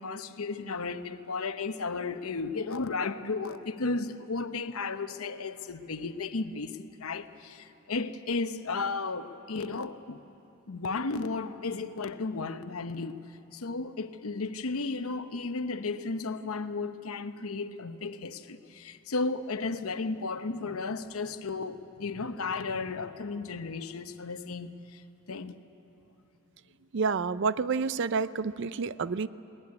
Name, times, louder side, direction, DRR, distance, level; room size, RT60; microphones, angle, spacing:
voice 1, 0.0-10.2 10.7-13.2 13.5-25.0 25.3-25.6, left 3 dB, 85° left, 0.8 m, -34 dB
voice 2, 26.9-29.3, right 5 dB, 55° right, 0.5 m, -29 dB
21.5 x 18.0 x 9.6 m
head